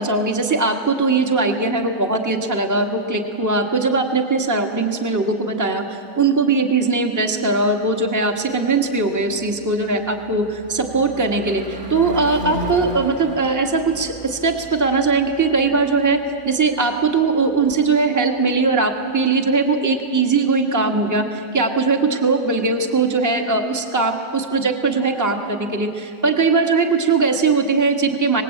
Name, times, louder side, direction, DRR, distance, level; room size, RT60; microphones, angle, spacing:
voice 1, 0.0-16.2 16.4-28.4, right 3 dB, 10° right, 3 dB, 1.5 m, -20 dB
Car passing by / Truck / Engine, 8.3-18.6, equal, 30° right, 2.2 m, -36 dB
25.0 x 20.0 x 8.7 m, 2.4 s
omnidirectional pair, 1.8 m